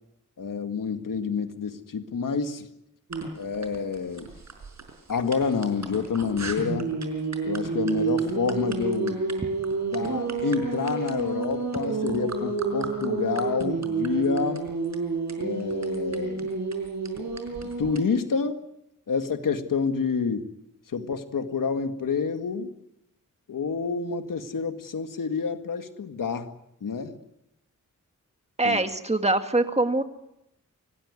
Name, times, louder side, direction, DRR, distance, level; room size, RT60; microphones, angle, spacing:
voice 1, 0.4-2.7 3.4-4.3 5.1-6.9 7.4-9.2 9.8-14.7 15.4-16.5 17.5-18.7 19.1-20.5 20.9-22.7 23.5-26.5 26.8-27.2 28.6-28.8, left 5 dB, 80° left, 7 dB, 2.1 m, -28 dB
sound 1, 3.1-18.0, right 4 dB, 60° right, 4.9 m, -30 dB
voice 2, 28.6-30.0, right 2 dB, 20° right, 7 dB, 2.0 m, -23 dB
25.5 x 18.5 x 9.7 m, 0.84 s
wide cardioid pair, 115°, 32 cm